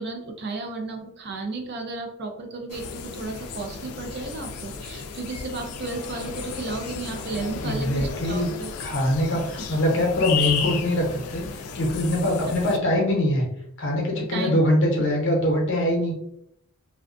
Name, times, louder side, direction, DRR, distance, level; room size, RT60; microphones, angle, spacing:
voice 1, 0.0-8.7 14.3-14.6, right 3 dB, 50° right, 4 dB, 0.4 m, -33 dB
sound 1, 2.7-12.8, left 6 dB, 85° left, 0.3 m, -33 dB
voice 2, 7.4-8.5 8.8-13.4 13.8-16.1, left 1 dB, 60° left, -1 dB, 0.7 m, -23 dB
2.4 x 2.2 x 2.4 m, 0.75 s
head